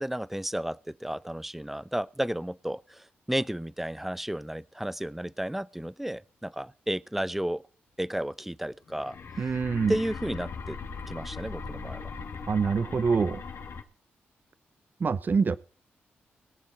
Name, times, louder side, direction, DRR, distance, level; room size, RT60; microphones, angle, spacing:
voice 1, 0.0-7.6 8.0-9.2 9.9-10.8 11.1-12.1, right 1 dB, 5° right, 0.7 m, -32 dB
sound 1, 8.9-13.8, left 5 dB, 65° left, 2.0 m, -39 dB
voice 2, 9.4-10.0 12.5-13.4 15.0-15.6, right 5 dB, 45° right, 0.8 m, -25 dB
21.0 x 7.1 x 4.3 m
cardioid pair, 65°, 4 cm